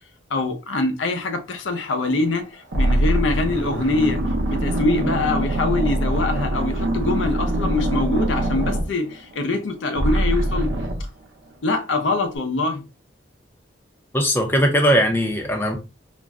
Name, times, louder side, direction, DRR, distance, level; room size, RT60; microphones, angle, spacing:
voice 1, 0.3-4.2 4.5-10.7 11.6-12.8, left 3 dB, 85° left, 0.5 m, -24 dB
sound 1, 2.1-2.3 2.7-9.6 10.0-11.1, right 1 dB, 80° right, 0.8 m, -23 dB
voice 2, 14.1-15.8, equal, 10° left, 0.5 m, -19 dB
2.5 x 2.1 x 3.5 m
head